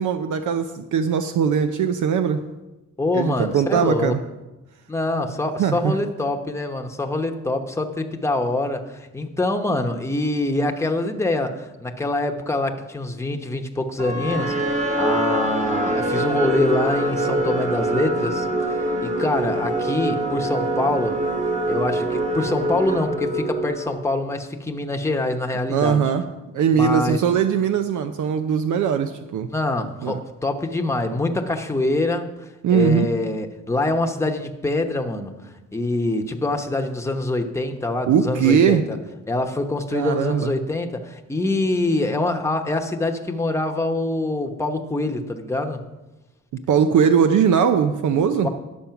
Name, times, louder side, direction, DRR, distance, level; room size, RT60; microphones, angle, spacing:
voice 1, 0.0-2.4 3.1-4.2 5.6-6.0 25.7-26.3 26.5-29.5 30.0-30.2 32.6-33.1 38.1-38.9 39.9-40.5 46.5-48.5, right 7 dB, 70° right, 8 dB, 0.6 m, -20 dB
voice 2, 3.0-4.1 4.9-21.2 21.7-26.1 26.8-27.2 29.5-35.3 35.7-39.0 39.3-45.8 48.4-48.5, left 2 dB, 10° left, 3 dB, 1.0 m, -25 dB
sound 1, 14.0-24.2, right 1 dB, 25° right, 1.3 m, -24 dB
10.5 x 7.0 x 5.8 m, 1.1 s
cardioid pair, 100°, 31 cm